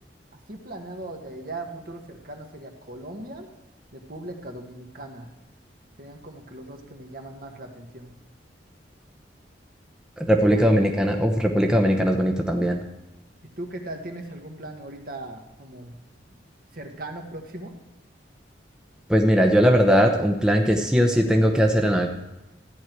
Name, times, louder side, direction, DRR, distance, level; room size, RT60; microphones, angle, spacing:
voice 1, 0.3-3.5 3.9-5.3 6.0-8.1 10.2-10.7 13.6-16.0 16.3-16.4 16.7-17.7, right 1 dB, 55° right, 3 dB, 1.6 m, -39 dB
voice 2, 10.2-12.8 19.1-22.1, equal, 5° right, 2 dB, 0.8 m, -19 dB
14.0 x 9.6 x 4.6 m, 0.96 s
head